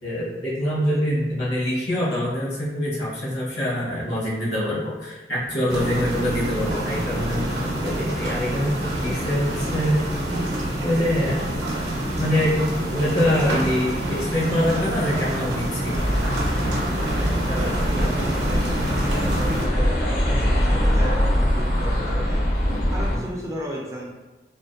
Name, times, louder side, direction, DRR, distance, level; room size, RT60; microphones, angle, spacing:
voice 1, 0.0-10.1 10.8-11.4 12.2-16.0 23.1-23.2, left 1 dB, 75° left, -6 dB, 0.9 m, -24 dB
sound 1, 5.7-19.7, right 1 dB, 80° right, 0.6 m, -27 dB
sound 2, 15.9-23.2, equal, 50° left, 0.5 m, -23 dB
voice 2, 17.1-18.8 19.2-22.4 22.9-24.1, equal, 15° right, -3 dB, 0.4 m, -34 dB
2.5 x 2.1 x 2.3 m, 1.1 s
head